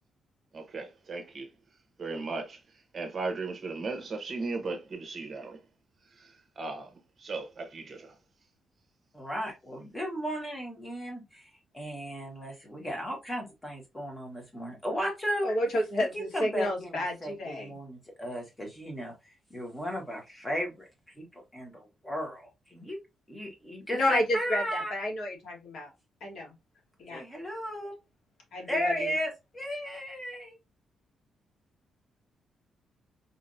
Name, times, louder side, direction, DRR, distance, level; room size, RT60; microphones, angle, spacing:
voice 1, 0.5-1.5 2.0-2.6 2.9-5.6 6.6-6.9 7.2-8.1, right 3 dB, 40° right, 1.0 m, -36 dB
voice 2, 9.1-15.5 16.0-20.9 21.2-23.0 23.3-24.9 27.1-27.9 28.7-30.6, equal, 10° left, 1.5 m, -35 dB
voice 3, 15.4-17.8 23.9-25.9 26.2-26.5 27.0-27.2 28.5-29.1, left 1 dB, 65° left, 1.6 m, -30 dB
4.2 x 2.8 x 2.6 m
cardioid pair, 145°, 0 cm